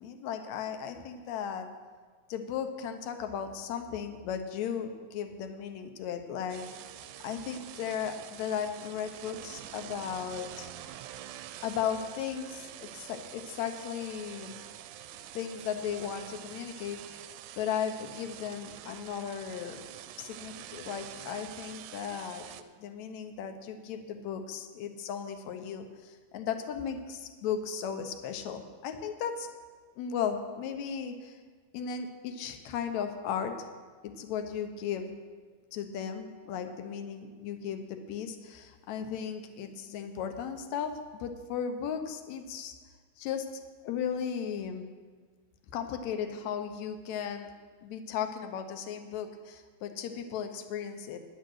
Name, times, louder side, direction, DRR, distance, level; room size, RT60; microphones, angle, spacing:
voice 1, 0.0-1.7 2.3-6.7 7.2-10.7 11.6-14.6 15.3-17.3 17.6-19.9 20.2-22.4 22.8-29.5 30.0-31.4 31.7-33.7 34.0-35.2 35.7-42.7 43.2-44.9 45.7-47.5 47.8-51.2, left 7 dB, 70° left, 7 dB, 1.9 m, -36 dB
sound 1, 6.5-22.6, right 12 dB, 80° right, 2.0 m, -46 dB
10.5 x 9.4 x 6.3 m, 1.5 s
omnidirectional pair, 3.7 m